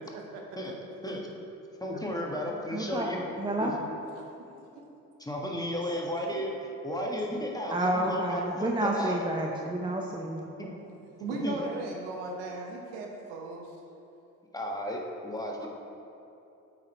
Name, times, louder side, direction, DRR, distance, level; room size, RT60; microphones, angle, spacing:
voice 1, 1.8-3.2 3.6-3.7 5.2-9.2 10.6-10.7 11.4-11.5 14.5-15.7, left 1 dB, 10° left, -1 dB, 1.4 m, -34 dB
voice 2, 2.7-3.1 3.4-3.8 6.9-7.0 7.7-10.4, right 1 dB, 10° right, 0 dB, 0.7 m, -30 dB
voice 3, 4.1-4.7 10.6-13.7 15.6-15.7, right 2 dB, 75° right, 1 dB, 1.1 m, -37 dB
8.3 x 5.0 x 4.3 m, 2.8 s
hypercardioid pair, 50°, 43 cm